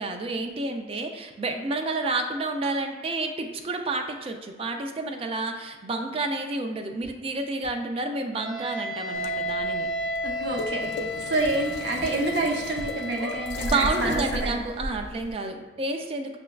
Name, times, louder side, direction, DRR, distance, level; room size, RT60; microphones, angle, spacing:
voice 1, 0.0-9.9 13.6-16.4, right 3 dB, 35° right, 4 dB, 0.3 m, -30 dB
sound 1, 7.0-7.1 7.6-7.7 8.7-8.8 9.1-9.2 9.6-9.7 11.4-12.1 12.6-12.7 13.1-13.4 14.3-14.4 14.5-14.6, left 2 dB, 55° right, 0.8 m, -41 dB
Wind instrument woodwind instrument, 8.3-14.5, left 1 dB, 5° left, 0.8 m, -33 dB
sound 2, 9.1-15.3, left 1 dB, 65° left, 0.3 m, -36 dB
voice 2, 10.2-14.6, right 2 dB, 85° right, 0 dB, 0.6 m, -28 dB
5.9 x 2.2 x 2.3 m, 1.3 s
head